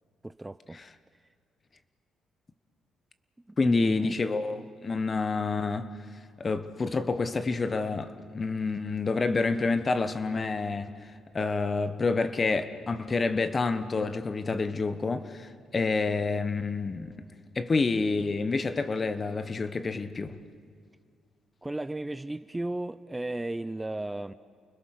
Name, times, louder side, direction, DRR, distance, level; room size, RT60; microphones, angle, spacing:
voice 1, 0.2-0.8 3.5-4.2 21.6-24.3, right 2 dB, 15° right, 0.5 m, -34 dB
voice 2, 3.6-5.9 6.4-11.0 11.3-17.1 17.5-20.4, left 4 dB, 35° left, 1.3 m, -28 dB
29.5 x 21.0 x 6.7 m
cardioid pair, 90°, 0 cm